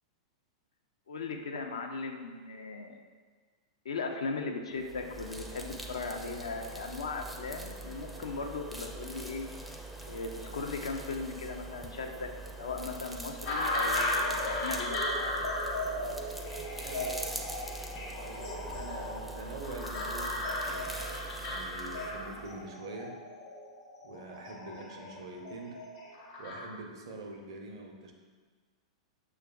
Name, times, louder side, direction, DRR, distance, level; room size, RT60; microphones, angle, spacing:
voice 1, 1.1-3.1 3.8-9.5 10.1-12.3 12.6-15.3, left 4 dB, 75° left, 3 dB, 0.4 m, -38 dB
sound 1, 4.8-22.6, right 2 dB, ahead, 0.4 m, -43 dB
sound 2, 13.5-26.7, left 1 dB, 60° left, 1.0 m, -35 dB
voice 2, 16.8-17.4 18.1-20.9 21.4-23.2 24.0-25.8 26.4-28.1, right 2 dB, 60° right, 3 dB, 0.5 m, -45 dB
6.2 x 2.3 x 2.3 m, 1.5 s
figure-of-eight pair, 100°, 3 cm